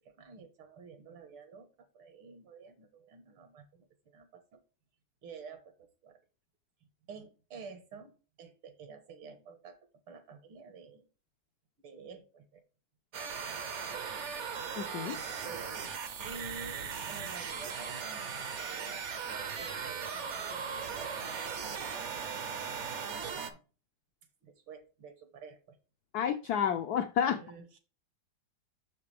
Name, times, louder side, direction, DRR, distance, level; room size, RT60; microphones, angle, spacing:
voice 1, 0.0-1.7 1.9-3.6 4.1-4.6 5.2-6.2 7.1-9.8 10.1-11.1 11.8-12.6 13.1-13.5 13.8-14.1 15.1-15.8 16.2-21.8 23.2-23.6 24.4-25.8 27.3-27.8, right 5 dB, 80° right, 8 dB, 2.1 m, -50 dB
sound 1, 13.1-23.5, right 6 dB, 60° right, 0.7 m, -38 dB
voice 2, 14.8-15.2 26.1-27.4, left 8 dB, 85° left, 8 dB, 0.8 m, -30 dB
6.6 x 5.9 x 3.4 m, 0.35 s
omnidirectional pair, 2.3 m